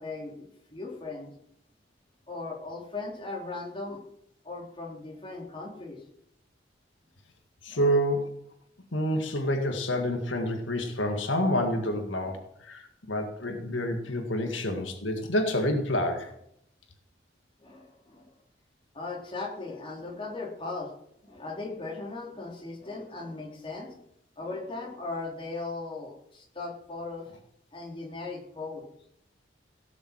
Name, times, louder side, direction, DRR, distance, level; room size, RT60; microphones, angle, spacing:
voice 1, 0.0-1.3 2.3-4.0 4.4-6.0 7.7-7.8 12.2-12.4 14.0-14.1 14.4-14.6 17.6-18.3 18.9-20.9 21.2-23.9 24.4-27.3 27.7-28.8, left 3 dB, 25° left, -2 dB, 3.5 m, -38 dB
voice 2, 7.6-8.2 8.9-16.3, equal, 80° left, 4 dB, 1.9 m, -28 dB
17.5 x 7.2 x 7.4 m, 0.73 s
head